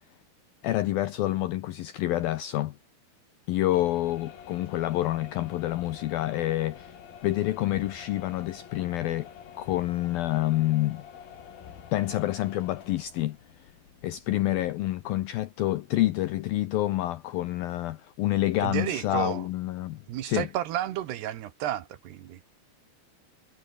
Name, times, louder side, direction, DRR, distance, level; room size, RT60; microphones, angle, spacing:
voice 1, 0.6-2.8 3.5-7.0 7.2-9.3 9.6-11.0 11.9-13.7 14.0-20.5, left 15 dB, 80° left, 2.1 m, -28 dB
sound 1, 3.7-15.5, left 8 dB, 55° left, 4.3 m, -48 dB
voice 2, 18.6-19.5 20.1-22.4, right 12 dB, 70° right, 3.3 m, -32 dB
omnidirectional pair, 5.2 m